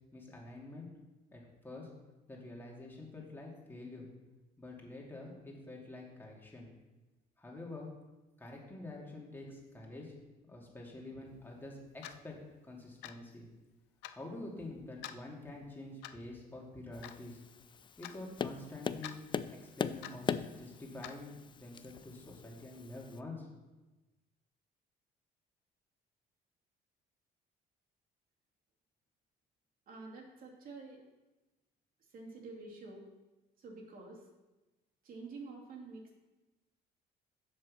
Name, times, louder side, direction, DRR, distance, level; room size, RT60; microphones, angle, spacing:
voice 1, 0.1-0.9 1.3-1.9 2.3-4.1 4.6-6.7 7.4-7.9 8.4-10.1 10.4-12.3 12.6-13.5 14.1-17.4 18.0-19.2 19.5-23.5, left 2 dB, 10° left, -2 dB, 2.6 m, -47 dB
Clock, 12.0-12.2 13.0-13.3 14.0-14.2 15.0-15.2 16.0-16.3 17.0-17.2 18.0-18.2 19.0-19.2 20.0-20.2 21.0-21.2, left 12 dB, 90° left, 0.5 m, -46 dB
Tap, 16.9-23.2, left 7 dB, 30° left, 0.4 m, -41 dB
voice 2, 29.9-31.0 32.1-33.0 33.6-34.3 35.0-36.2, right 3 dB, 55° right, -1 dB, 2.6 m, -48 dB
7.7 x 6.3 x 6.4 m, 1.1 s
cardioid pair, 110°, 17 cm